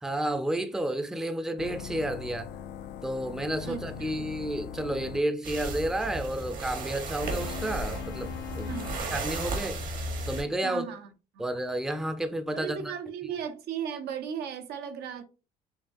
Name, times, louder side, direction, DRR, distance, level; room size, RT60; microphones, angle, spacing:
voice 1, 0.0-2.5 3.0-8.3 8.6-8.7 9.1-9.8 10.3-10.8 11.4-12.9, right 1 dB, 5° right, 0.5 m, -31 dB
sound 1, 1.6-5.3 7.2-9.0, left 10 dB, 80° left, 0.5 m, -41 dB
voice 2, 3.6-4.3 8.6-9.2 10.6-11.1 11.3-11.4 12.5-15.2, right 8 dB, 75° right, 0.7 m, -36 dB
sound 2, 5.4-10.4, right 2 dB, 55° right, 1.1 m, -34 dB
5.6 x 2.3 x 2.5 m
cardioid pair, 110°, 17 cm